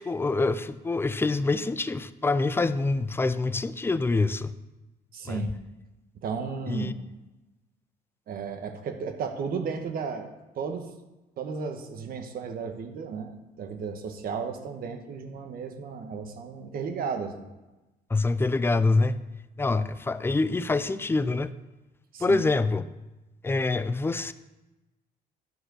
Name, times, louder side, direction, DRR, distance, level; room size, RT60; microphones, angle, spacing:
voice 1, 0.0-4.5 5.3-5.5 6.7-6.9 18.1-19.2 19.6-21.5 22.2-22.9 23.4-24.3, left 3 dB, 15° left, 14 dB, 0.4 m, -25 dB
voice 2, 5.1-5.5 6.2-6.9 8.3-10.3 10.5-10.9 11.4-17.5 22.1-22.4, right 5 dB, 60° right, 6 dB, 1.4 m, -34 dB
11.0 x 4.9 x 6.4 m, 1.1 s
cardioid pair, 110°, 17 cm